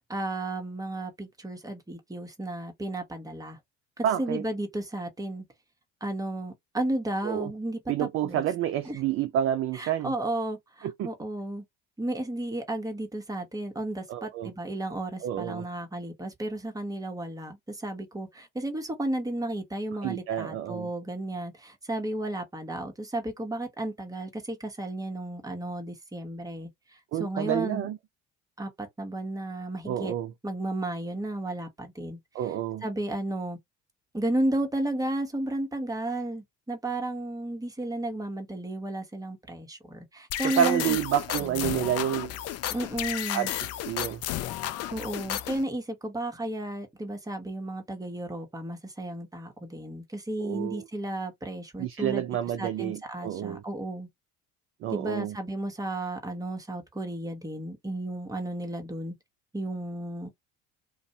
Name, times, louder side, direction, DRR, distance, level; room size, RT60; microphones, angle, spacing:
voice 1, 0.1-3.6 4.0-5.4 6.0-8.4 8.8-9.0 9.7-11.6 12.0-27.9 28.6-30.1 30.4-32.2 32.8-33.6 34.1-41.0 41.4-41.7 42.7-43.5 44.9-52.2 52.6-54.1 54.9-59.1 59.5-60.3, right 1 dB, 10° right, 1.0 m, -33 dB
voice 2, 4.0-4.4 7.2-7.5 7.9-10.1 10.8-11.1 14.1-14.5 15.2-15.7 20.0-20.9 27.1-28.0 29.9-30.3 32.3-32.8 40.4-42.3 43.3-43.5 43.9-44.2 50.4-50.8 51.8-53.6 54.8-55.4, right 10 dB, 35° right, 0.4 m, -29 dB
sound 1, 40.3-45.6, left 12 dB, 40° left, 0.4 m, -33 dB
2.5 x 2.1 x 2.7 m
hypercardioid pair, 65°, 38 cm